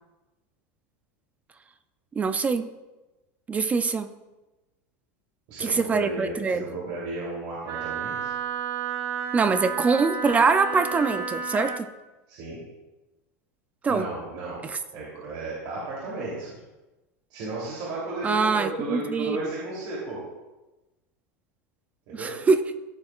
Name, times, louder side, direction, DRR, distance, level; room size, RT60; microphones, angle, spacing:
voice 1, 2.2-2.7 3.5-4.1 5.6-6.6 9.3-11.9 13.8-14.1 18.2-19.4 22.1-22.6, right 4 dB, 15° right, 11 dB, 0.4 m, -23 dB
voice 2, 5.5-8.3 12.3-12.6 13.9-14.6 14.9-16.5 17.3-20.2 22.1-22.3, right 2 dB, 55° right, -6 dB, 3.0 m, -34 dB
Wind instrument woodwind instrument, 7.6-11.8, right 6 dB, 40° right, 0.9 m, -31 dB
16.0 x 7.5 x 2.4 m, 1.1 s
supercardioid pair, 145°, 8 cm